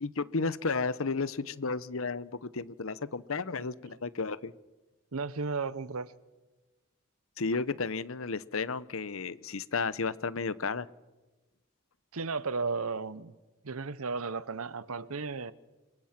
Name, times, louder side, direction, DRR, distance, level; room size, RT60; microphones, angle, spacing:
voice 1, 0.0-4.5 7.4-10.9, left 4 dB, 75° left, 18 dB, 0.9 m, -33 dB
voice 2, 5.1-6.1 12.1-13.3 13.6-15.5, right 4 dB, 85° right, 18 dB, 0.9 m, -34 dB
27.0 x 24.0 x 6.0 m, 1.2 s
head